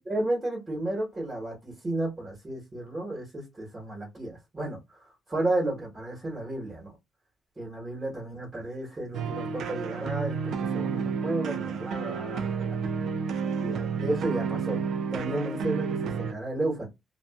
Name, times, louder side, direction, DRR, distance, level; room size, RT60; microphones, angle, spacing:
voice 1, 0.0-6.9 7.6-12.8 13.6-14.8 15.1-16.9, right 2 dB, 25° right, 1.1 m, -33 dB
sound 1, 9.1-16.3, right 6 dB, 70° right, 0.3 m, -31 dB
2.3 x 2.3 x 2.3 m
cardioid pair, 90°, 0 cm